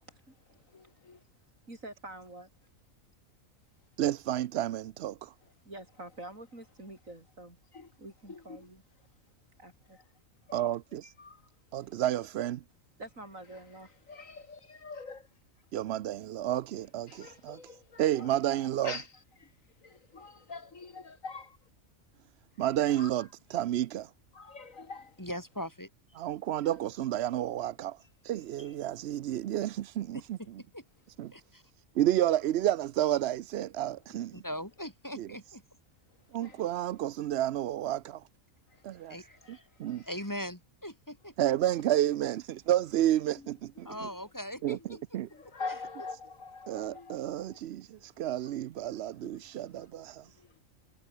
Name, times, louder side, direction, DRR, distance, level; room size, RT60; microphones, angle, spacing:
voice 1, 0.5-1.2 5.4-5.5 6.0-6.2 7.7-8.7 9.0-9.1 9.8-10.1 10.4-10.7 11.0-12.0 13.4-15.6 17.1-21.7 22.5-23.6 24.3-25.3 26.5-26.9 28.0-29.0 31.2-31.5 34.0-34.1 34.4-34.6 36.1-37.1 38.7-40.4 41.8-41.9 43.3-44.3 44.9-48.1 48.4-48.6 48.9-50.6, left 4 dB, 80° left, 3.0 m, -48 dB
voice 2, 1.7-2.5 5.6-7.6 8.0-8.8 9.6-10.0 13.0-13.9, right 1 dB, 80° right, 8.5 m, -46 dB
voice 3, 4.0-5.3 10.5-11.1 11.7-12.6 15.7-17.6 18.0-18.9 22.6-23.2 23.5-24.1 26.2-28.0 28.2-30.6 31.2-31.3 32.0-34.4 35.2-35.3 36.3-38.2 38.8-39.2 39.5-40.0 41.4-44.1 44.6-44.8 45.1-45.3 46.7-50.3, right 12 dB, 65° right, 0.7 m, -30 dB
voice 4, 25.2-25.9 28.6-28.7 30.4-30.5 30.7-30.8 31.3-31.6 34.3-35.6 39.1-39.6 40.1-41.3 43.9-45.0, equal, 15° left, 3.5 m, -40 dB
omnidirectional pair, 1.4 m